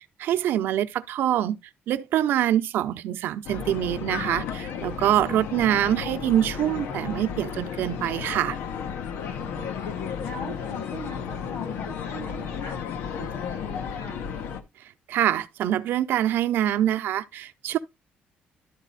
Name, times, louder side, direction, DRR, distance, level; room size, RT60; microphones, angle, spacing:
voice 1, 0.2-1.6 1.9-8.6 15.1-17.8, right 11 dB, 70° right, 0.7 m, -25 dB
sound 1, 3.4-14.6, left 7 dB, 85° left, 1.0 m, -33 dB
voice 2, 9.2-9.7 10.2-12.8 13.2-14.2, left 3 dB, 65° left, 2.4 m, -39 dB
12.0 x 4.1 x 4.0 m
cardioid pair, 150°, 4 cm